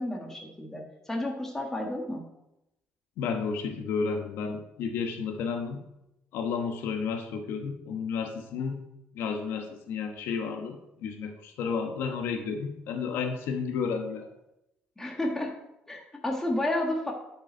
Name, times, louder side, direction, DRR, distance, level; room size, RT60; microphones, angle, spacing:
voice 1, 0.0-2.2 15.0-15.5 15.9-17.1, left 1 dB, 10° left, 0 dB, 1.4 m, -31 dB
voice 2, 3.2-5.8 6.3-8.8 9.1-14.3, left 5 dB, 80° left, 5 dB, 1.1 m, -32 dB
9.9 x 5.5 x 4.5 m, 0.88 s
cardioid pair, 155°, 4 cm